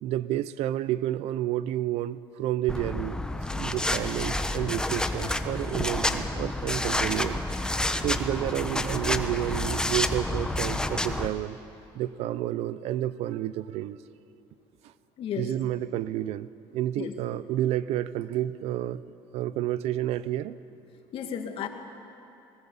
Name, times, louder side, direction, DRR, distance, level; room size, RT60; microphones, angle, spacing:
voice 1, 0.0-3.2 3.5-7.4 8.0-11.6 11.9-14.0 15.4-19.0 19.3-20.6, right 13 dB, 70° right, 17 dB, 0.6 m, -30 dB
sound 1, 2.7-11.3, left 1 dB, 5° left, 1.0 m, -29 dB
voice 2, 15.2-15.5 17.0-17.1 21.1-21.7, left 8 dB, 55° left, 5 dB, 2.0 m, -33 dB
20.0 x 19.0 x 7.3 m, 2.7 s
supercardioid pair, 95°, 11 cm